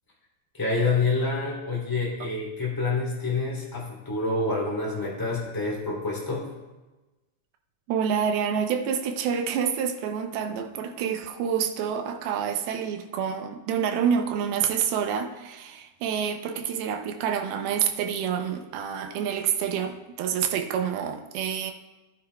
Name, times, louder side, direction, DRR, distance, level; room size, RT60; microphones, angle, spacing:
voice 1, 0.5-6.5, left 3 dB, 5° left, -4 dB, 2.2 m, -27 dB
voice 2, 7.9-21.7, right 7 dB, 90° right, 5 dB, 2.7 m, -28 dB
18.5 x 9.7 x 2.3 m, 1.1 s
omnidirectional pair, 4.3 m